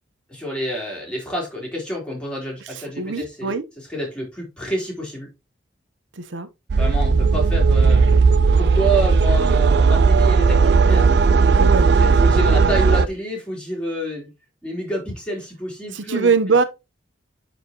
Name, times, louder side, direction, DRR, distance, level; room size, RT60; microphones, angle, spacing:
voice 1, 0.3-3.6 3.9-5.3 6.7-8.2 8.6-11.1 11.5-11.7 12.0-14.3 14.6-16.3, right 1 dB, 5° left, 3.4 m, -28 dB
voice 2, 3.0-3.6 6.2-6.5 11.6-11.9 15.9-16.6, right 4 dB, 85° right, 0.8 m, -21 dB
sound 1, 6.7-13.1, right 4 dB, 60° right, 0.4 m, -16 dB
9.7 x 4.3 x 2.9 m
head